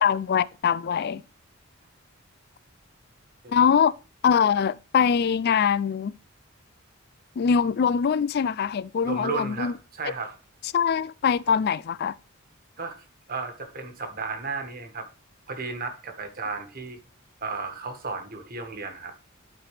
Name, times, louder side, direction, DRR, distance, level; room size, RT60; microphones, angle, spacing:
voice 1, 0.0-1.2 3.5-3.9 4.2-6.1 7.4-9.7 10.7-12.2, left 7 dB, 50° left, 0.3 m, -23 dB
voice 2, 3.4-3.7 9.0-10.4 12.8-15.1 15.5-17.0 17.4-19.1, right 4 dB, 45° right, 1.5 m, -34 dB
12.0 x 5.0 x 3.3 m
head